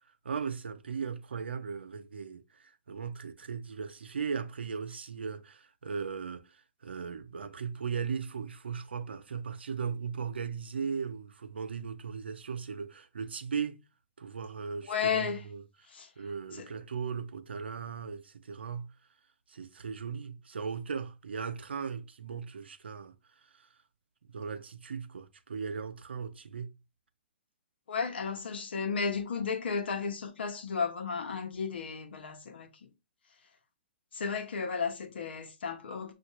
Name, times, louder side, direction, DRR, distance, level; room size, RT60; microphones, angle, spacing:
voice 1, 0.2-13.8 14.2-15.6 16.2-18.9 19.5-23.1 23.5-23.7 24.3-26.8, right 6 dB, 90° right, 0.6 m, -37 dB
voice 2, 14.9-15.4 15.9-16.1 16.5-16.7 27.9-32.9 34.1-36.1, left 5 dB, 75° left, 1.0 m, -33 dB
6.4 x 2.5 x 3.0 m
hypercardioid pair, 130°, 6 cm